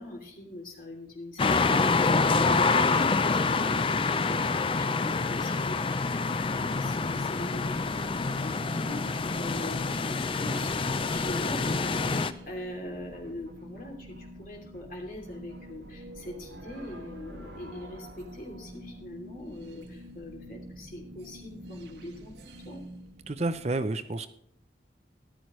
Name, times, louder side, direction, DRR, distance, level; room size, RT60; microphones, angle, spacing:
voice 1, 0.0-10.9 11.1-12.1 12.4-22.3 22.6-22.8, left 1 dB, 50° left, 0 dB, 2.8 m, -42 dB
sound 1, 1.4-12.3, left 4 dB, 30° left, 0.4 m, -26 dB
sound 2, 5.0-23.8, right 1 dB, 75° right, 1.6 m, -47 dB
voice 2, 23.3-24.3, right 2 dB, 35° right, 11 dB, 0.6 m, -30 dB
14.0 x 11.5 x 3.1 m, 0.66 s
head